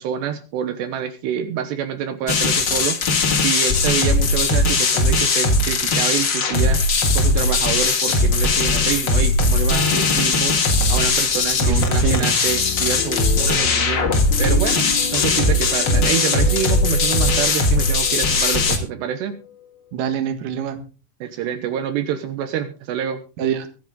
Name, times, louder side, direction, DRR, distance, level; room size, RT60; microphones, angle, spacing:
voice 1, 0.0-3.0 3.4-10.6 10.9-14.1 14.4-19.4 21.2-23.2, right 9 dB, 75° right, 9 dB, 3.1 m, -27 dB
sound 1, 2.3-18.8, left 3 dB, 60° left, 1.2 m, -19 dB
voice 2, 11.6-12.3 19.9-20.8 23.4-23.7, right 9 dB, 60° right, 8 dB, 2.8 m, -25 dB
sound 2, 12.5-19.9, left 10 dB, 85° left, 3.4 m, -32 dB
23.5 x 8.1 x 3.7 m, 0.34 s
omnidirectional pair, 5.1 m